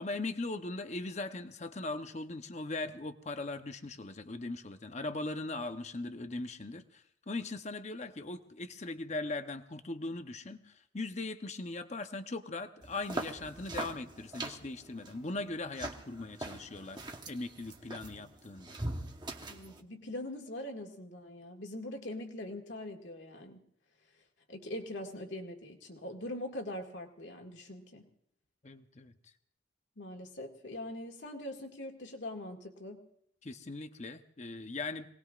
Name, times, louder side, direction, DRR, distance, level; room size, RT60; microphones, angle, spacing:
voice 1, 0.0-18.8 28.6-29.1 33.4-35.1, left 2 dB, 35° left, 8 dB, 0.8 m, -39 dB
sound 1, 12.8-19.8, right 2 dB, 25° right, 1.1 m, -42 dB
voice 2, 19.5-23.6 24.5-28.1 30.0-33.0, left 1 dB, 70° left, 2 dB, 2.0 m, -42 dB
26.0 x 19.0 x 2.5 m, 0.69 s
head